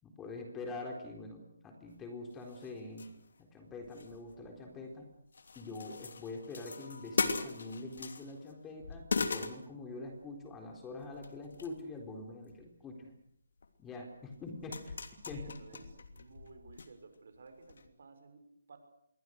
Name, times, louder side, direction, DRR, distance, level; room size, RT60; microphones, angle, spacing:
voice 1, 0.0-3.1 3.4-5.1 5.6-13.1 13.8-14.9 15.3-15.4, left 2 dB, 10° left, 2 dB, 4.1 m, -45 dB
sound 1, 2.0-2.1 2.4-3.4 3.7-5.0 5.3-8.5 8.8-10.2 11.0-11.8 12.2-12.6 13.6-13.7 14.3-16.9 17.1-17.2 17.7-17.9, left 4 dB, 65° left, 2.8 m, -39 dB
voice 2, 15.3-18.8, right 4 dB, 60° right, 7 dB, 5.9 m, -56 dB
26.5 x 23.5 x 6.6 m, 0.74 s
figure-of-eight pair, 150°, 0 cm